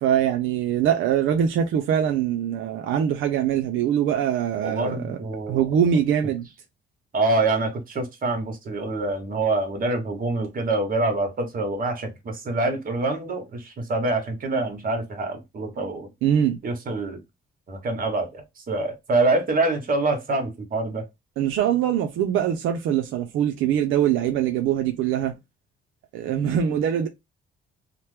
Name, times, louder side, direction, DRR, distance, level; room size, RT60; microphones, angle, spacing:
voice 1, 0.0-5.2 5.5-6.5 16.2-16.6 21.4-25.3 26.1-27.1, right 9 dB, 85° right, 0.5 m, -23 dB
voice 2, 4.6-5.6 7.1-16.1 16.6-17.2 17.7-18.4 18.7-21.0, right 2 dB, 45° right, 1.2 m, -25 dB
2.9 x 2.1 x 3.2 m
cardioid pair, 90°, 20 cm